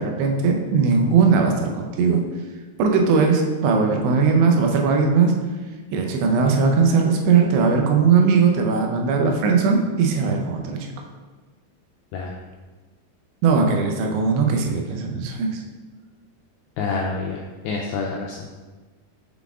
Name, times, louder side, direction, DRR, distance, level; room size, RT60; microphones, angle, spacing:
voice 1, 0.0-2.2 2.8-5.3 5.9-10.9 13.4-15.6, right 5 dB, 85° right, 2 dB, 2.8 m, -19 dB
voice 2, 16.8-18.4, left 4 dB, 90° left, -1 dB, 2.1 m, -27 dB
7.0 x 4.0 x 3.5 m, 1.3 s
omnidirectional pair, 4.8 m